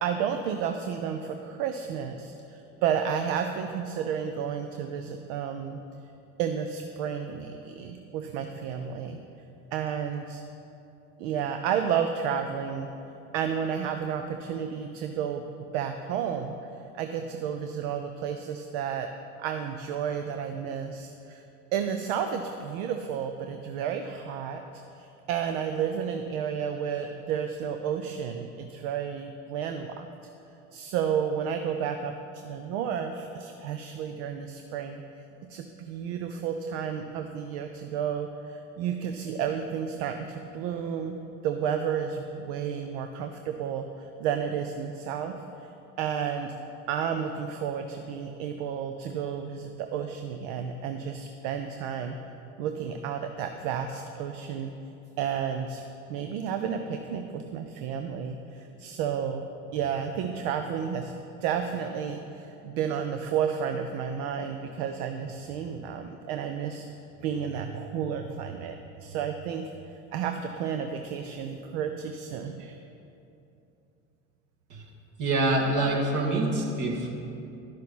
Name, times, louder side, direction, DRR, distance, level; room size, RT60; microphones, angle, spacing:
voice 1, 0.0-5.8 6.4-9.2 9.7-10.4 11.2-12.9 13.3-15.4 15.7-16.6 17.0-19.1 19.4-21.4 21.7-24.6 24.9-30.1 30.7-35.0 35.5-41.2 41.4-45.3 46.0-46.6 46.9-52.2 52.6-54.7 55.2-55.8 56.1-59.5 59.7-61.1 61.4-66.9 67.2-69.7 70.1-72.7, right 8 dB, 75° right, 6 dB, 0.6 m, -31 dB
voice 2, 75.2-77.1, right 2 dB, 55° right, -2 dB, 1.9 m, -25 dB
11.0 x 6.4 x 4.1 m, 2.8 s
supercardioid pair, 90°, 37 cm